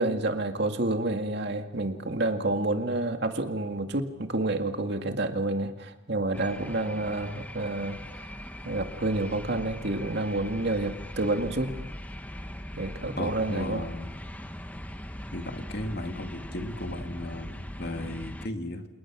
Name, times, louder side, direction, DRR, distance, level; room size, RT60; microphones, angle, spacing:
voice 1, 0.0-8.3 8.6-11.8 12.8-13.8, right 2 dB, 60° right, 5 dB, 2.2 m, -29 dB
sound 1, 6.3-18.5, equal, 10° left, 1.3 m, -40 dB
voice 2, 13.2-14.1 15.3-18.9, left 1 dB, 55° left, 5 dB, 2.3 m, -35 dB
29.0 x 28.0 x 6.2 m, 0.99 s
head